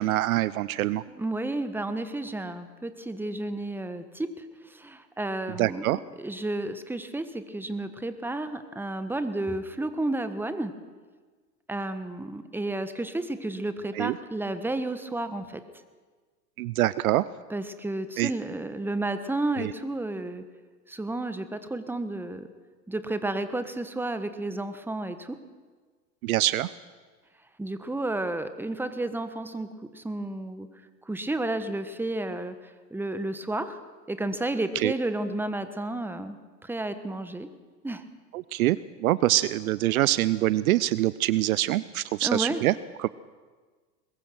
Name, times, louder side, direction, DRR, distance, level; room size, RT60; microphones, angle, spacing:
voice 1, 0.0-1.0 5.6-6.0 13.9-14.2 16.6-17.3 18.2-18.3 19.6-19.7 26.2-26.7 34.7-34.9 38.3-43.1, right 15 dB, 60° right, 19 dB, 0.7 m, -25 dB
voice 2, 1.2-4.4 4.7-10.7 11.7-15.6 17.5-20.4 20.9-22.5 22.9-25.4 27.6-30.7 31.1-32.5 32.9-33.8 34.1-36.4 36.6-37.5 37.8-38.0 42.2-42.6, right 2 dB, 5° right, 10 dB, 1.4 m, -31 dB
21.5 x 21.5 x 6.1 m, 1.4 s
hypercardioid pair, 95°, 50 cm